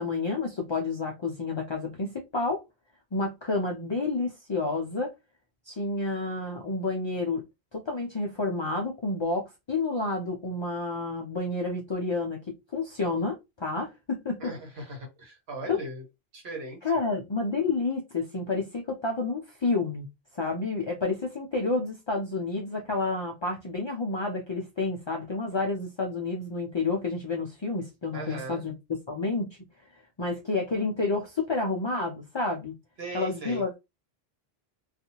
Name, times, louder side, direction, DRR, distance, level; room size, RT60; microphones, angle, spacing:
voice 1, 0.0-2.6 3.1-5.1 5.7-7.4 7.7-12.4 12.7-14.5 15.7-15.8 16.8-20.1 20.3-28.8 29.1-29.6 30.2-32.7 33.1-33.8, left 3 dB, 50° left, 0.3 m, -29 dB
voice 2, 14.4-16.0 16.3-16.8 28.1-28.6 33.0-33.6, right 2 dB, 70° right, 1.3 m, -38 dB
2.6 x 2.4 x 2.8 m
omnidirectional pair, 1.1 m